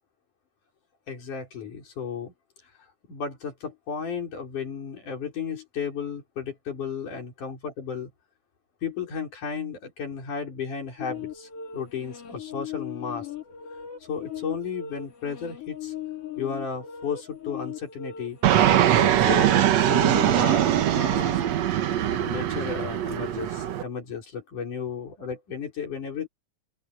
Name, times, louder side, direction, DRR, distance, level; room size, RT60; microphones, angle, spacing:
voice 1, 1.1-2.3 3.1-8.1 8.8-13.3 14.0-15.9 16.4-18.4 18.9-21.4 22.1-26.3, left 6 dB, 80° left, 6.4 m, -34 dB
sound 1, 11.0-18.8, left 9 dB, 55° left, 3.0 m, -38 dB
Fixed-wing aircraft airplane, 18.4-23.8, right 11 dB, 65° right, 2.2 m, -22 dB
open air
omnidirectional pair, 3.5 m